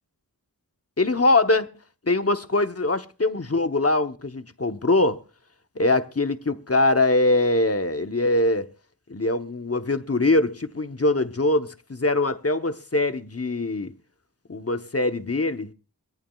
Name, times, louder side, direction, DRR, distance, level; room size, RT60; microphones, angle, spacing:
voice 1, 1.0-1.7 2.1-5.2 5.8-8.7 9.1-13.9 14.5-15.7, left 2 dB, 40° left, 0.9 m, -22 dB
23.5 x 14.5 x 2.3 m
wide cardioid pair, 40°, 35 cm